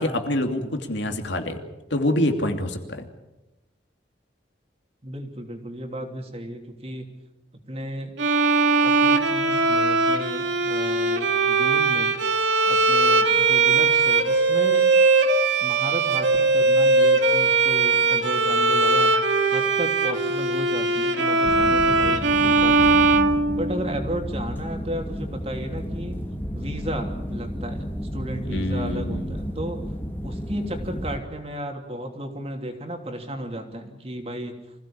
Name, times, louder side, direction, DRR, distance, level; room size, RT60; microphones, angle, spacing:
voice 1, 0.0-1.6 1.9-3.1 28.5-29.3, left 1 dB, 75° left, 5 dB, 2.8 m, -26 dB
voice 2, 5.0-7.1 7.7-8.1 8.8-14.9 15.6-19.2 19.5-23.0 23.5-26.2 26.5-29.8 30.2-34.6, right 1 dB, 35° right, 4 dB, 3.0 m, -34 dB
Bowed string instrument, 8.2-24.1, right 3 dB, 85° right, 2.2 m, -20 dB
sound 1, 21.4-31.2, equal, 10° left, 1.9 m, -32 dB
25.0 x 16.5 x 8.8 m, 1.0 s
head